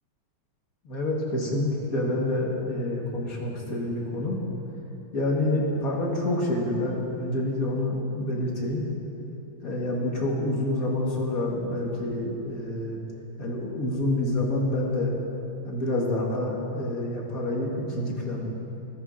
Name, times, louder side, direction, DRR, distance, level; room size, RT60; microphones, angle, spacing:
voice 1, 0.8-4.4 5.1-8.9 9.6-13.0 13.4-15.1 15.7-18.4, left 1 dB, 45° left, -2 dB, 1.7 m, -27 dB
14.5 x 14.0 x 2.5 m, 2.9 s
omnidirectional pair, 2.4 m